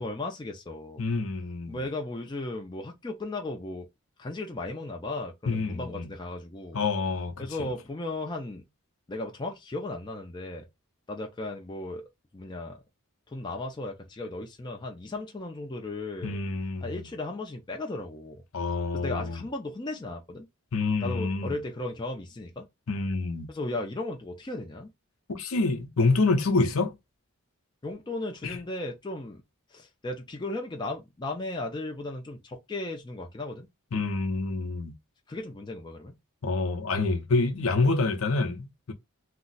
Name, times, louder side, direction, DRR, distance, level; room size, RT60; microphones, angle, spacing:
voice 1, 0.0-1.0 1.7-3.9 4.2-6.8 7.4-8.6 9.1-10.7 11.1-12.8 13.3-16.4 16.8-18.4 18.9-20.5 21.0-22.7 23.5-24.9 27.8-29.4 29.7-33.7 35.3-36.2, left 2 dB, 20° left, 0.4 m, -36 dB
voice 2, 1.0-1.9 5.5-6.1 6.7-7.7 16.2-17.0 18.5-19.4 20.7-21.5 22.9-23.5 25.3-26.9 28.4-28.6 33.9-34.9 36.4-38.9, left 3 dB, 70° left, 0.6 m, -27 dB
2.5 x 2.0 x 3.9 m
head